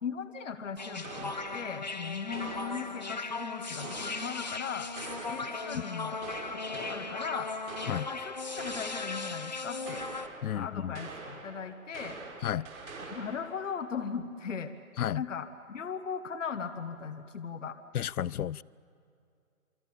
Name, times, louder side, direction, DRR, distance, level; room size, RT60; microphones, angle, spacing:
voice 1, 0.0-4.9 5.3-6.2 6.5-7.5 8.1-10.1 10.5-12.2 13.1-14.7 15.1-17.8, left 6 dB, 60° left, 8 dB, 1.3 m, -38 dB
sound 1, 0.8-10.3, left 3 dB, 30° left, 0.6 m, -38 dB
sound 2, 1.0-3.2 3.8-5.7 6.2-9.4 9.8-10.7 10.9-13.7, right 3 dB, 70° right, 6.0 m, -45 dB
voice 2, 10.4-10.9 12.4-12.7 15.0-15.2 17.9-18.6, left 10 dB, 85° left, 23 dB, 0.6 m, -32 dB
28.0 x 25.0 x 7.1 m, 2.4 s
hypercardioid pair, 175°, 43 cm